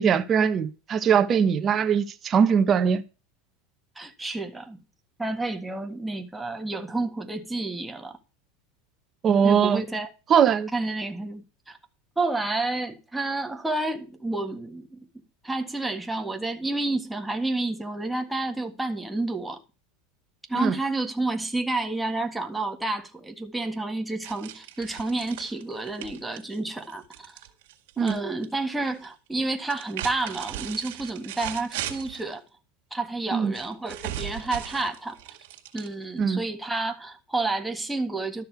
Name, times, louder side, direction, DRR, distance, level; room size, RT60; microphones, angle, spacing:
voice 1, 0.0-3.0 9.2-9.8 10.3-10.7 20.5-20.7 28.0-28.2 33.3-33.5 36.2-36.4, right 7 dB, 30° right, 1.2 m, -21 dB
voice 2, 4.0-4.8 5.2-8.2 9.4-10.1 10.7-11.8 12.2-15.1 15.4-19.6 20.5-27.3 28.0-32.4 32.9-35.2 35.7-38.5, right 2 dB, 5° right, 1.6 m, -30 dB
sound 1, 24.2-28.2 28.4-29.1 29.6-32.3 33.5-36.2, right 13 dB, 80° right, 2.1 m, -38 dB
12.5 x 6.6 x 4.6 m
supercardioid pair, 125°, 0 cm